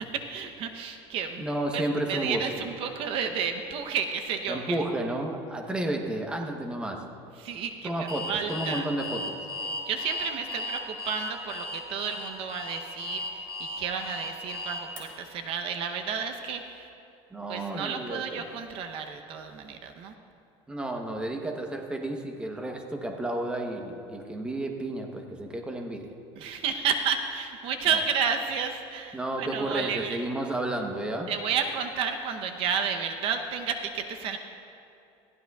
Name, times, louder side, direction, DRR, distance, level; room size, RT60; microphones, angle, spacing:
voice 1, 0.0-1.5 1.7-1.8 2.1-4.8 7.4-8.9 9.9-16.9 17.5-20.1 26.4-30.2 31.3-34.4, right 6 dB, 50° right, 6 dB, 0.7 m, -31 dB
voice 2, 1.4-2.7 4.5-7.0 7.8-9.5 17.3-18.5 20.7-26.1 27.9-28.0 29.1-31.3, right 1 dB, 10° right, 2 dB, 0.9 m, -32 dB
Alarm, 8.1-15.0, left 2 dB, 30° right, 2.5 m, -35 dB
20.5 x 15.5 x 2.3 m, 2.7 s
cardioid pair, 155°, 12 cm